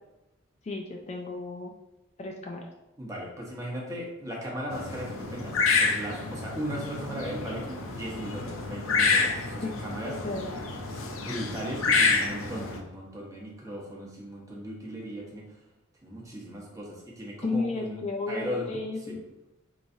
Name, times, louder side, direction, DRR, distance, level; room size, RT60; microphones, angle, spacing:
voice 1, 0.6-1.7 2.2-2.7 9.6-9.8 10.2-10.5 17.4-19.2, left 3 dB, 35° left, 1 dB, 0.4 m, -33 dB
voice 2, 3.0-10.2 11.1-15.6 16.0-18.8 19.1-19.2, equal, 15° right, -3 dB, 0.9 m, -37 dB
sound 1, 4.7-12.8, left 4 dB, 80° left, 0.5 m, -28 dB
4.6 x 3.1 x 2.6 m, 0.94 s
head